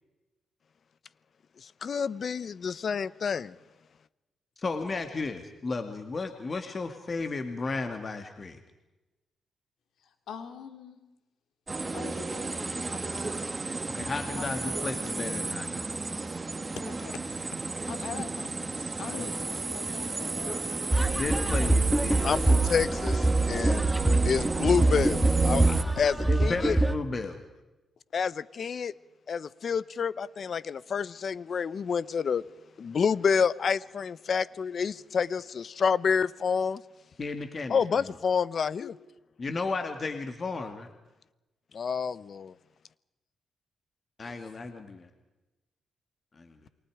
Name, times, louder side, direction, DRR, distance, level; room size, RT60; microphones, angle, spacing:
voice 1, 1.6-3.6 22.2-23.8 24.1-26.1 26.4-26.7 28.1-28.9 29.3-32.4 32.8-36.8 37.7-38.9 41.7-42.5, left 6 dB, 55° left, 0.9 m, -28 dB
voice 2, 4.6-8.6 13.9-15.9 19.1-19.3 21.1-22.4 26.3-27.4 37.2-38.1 39.4-40.9 44.2-45.1 46.3-46.6, left 3 dB, 35° left, 2.3 m, -34 dB
voice 3, 10.3-11.0 11.9-13.5 14.3-14.4 16.8-17.2 17.9-20.6 20.8-21.1 38.8-38.9 44.2-44.4, left 7 dB, 75° left, 3.2 m, -43 dB
sound 1, 11.7-25.8, right 3 dB, 25° right, 2.0 m, -33 dB
sound 2, 20.9-26.9, right 2 dB, 10° right, 1.7 m, -25 dB
28.5 x 23.5 x 5.0 m
cardioid pair, 85°, 0 cm